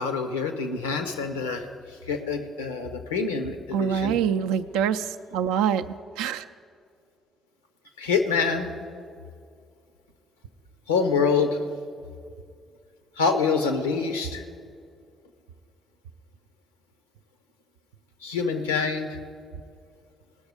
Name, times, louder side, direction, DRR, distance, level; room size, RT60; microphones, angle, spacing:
voice 1, 0.0-1.7 2.1-4.2 8.0-8.9 10.9-11.6 13.2-14.4 18.2-19.2, left 5 dB, 85° left, 7 dB, 0.7 m, -26 dB
voice 2, 3.7-6.4, right 8 dB, 75° right, 8 dB, 0.4 m, -25 dB
18.5 x 6.5 x 4.9 m, 2.3 s
figure-of-eight pair, 45°, 0 cm